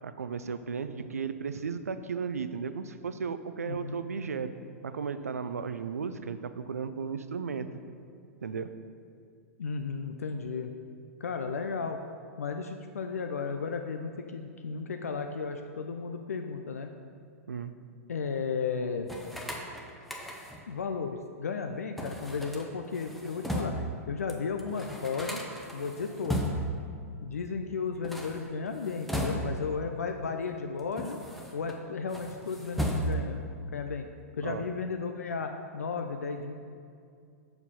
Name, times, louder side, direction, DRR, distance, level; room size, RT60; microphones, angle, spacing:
voice 1, 0.0-4.5 4.8-7.7 8.4-8.7 17.5-17.7 34.4-34.6, right 6 dB, 80° right, 11 dB, 0.4 m, -35 dB
voice 2, 3.6-4.0 9.6-10.7 11.2-12.0 12.4-16.9 18.1-19.1 20.7-23.7 24.1-25.4 25.7-26.4 27.2-31.2 31.5-34.1 34.4-36.5, left 5 dB, 75° left, 5 dB, 0.4 m, -34 dB
sound 1, 19.1-20.7 22.0-23.9 24.3-24.4 24.6-26.8 27.9-29.7 30.5-31.8 32.1-33.4, equal, ahead, 0.8 m, -35 dB
6.6 x 4.8 x 5.3 m, 2.3 s
figure-of-eight pair, 105°, 8 cm